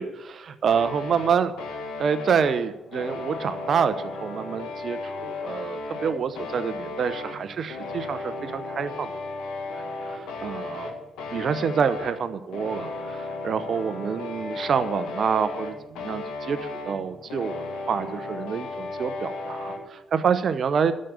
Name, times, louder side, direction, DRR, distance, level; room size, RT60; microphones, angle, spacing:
voice 1, 0.0-1.5 2.0-9.2 9.7-10.9 11.3-20.9, right 6 dB, 55° right, 12 dB, 1.0 m, -27 dB
sound 1, 0.7-19.8, left 3 dB, 70° left, 1.8 m, -35 dB
12.0 x 6.6 x 7.2 m, 0.96 s
hypercardioid pair, 40°, 0 cm